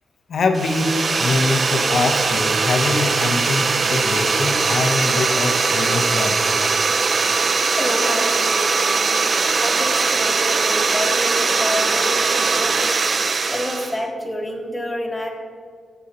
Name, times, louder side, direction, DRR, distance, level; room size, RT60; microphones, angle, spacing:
voice 1, 0.3-6.4, left 3 dB, 55° left, 4 dB, 0.9 m, -23 dB
sound 1, 0.5-14.0, right 4 dB, 35° right, 0.4 m, -20 dB
voice 2, 7.7-9.1 9.5-12.9 13.5-15.3, left 1 dB, 10° left, -1 dB, 1.5 m, -28 dB
20.5 x 8.1 x 2.9 m, 2.1 s
wide cardioid pair, 170°, 0 cm